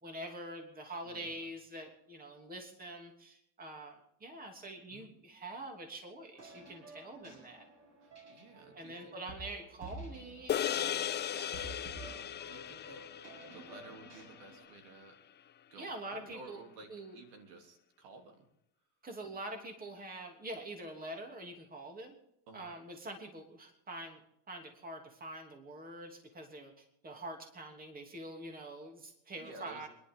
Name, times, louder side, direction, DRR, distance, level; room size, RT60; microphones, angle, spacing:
voice 1, 0.0-7.7 8.7-11.5 15.8-16.6 16.9-17.2 19.0-22.1 22.5-24.2 24.5-29.9, right 1 dB, 20° right, 3 dB, 3.0 m, -45 dB
voice 2, 1.0-1.3 4.9-5.1 8.0-9.2 11.9-13.2 13.5-15.1 15.7-18.5 22.5-22.7 29.4-29.9, right 3 dB, 80° right, 3 dB, 3.3 m, -54 dB
sound 1, 6.3-14.6, right 2 dB, 40° right, 7.7 m, -51 dB
sound 2, 10.5-15.1, left 10 dB, 25° left, 0.5 m, -37 dB
27.5 x 11.0 x 3.8 m, 0.77 s
supercardioid pair, 120°, 39 cm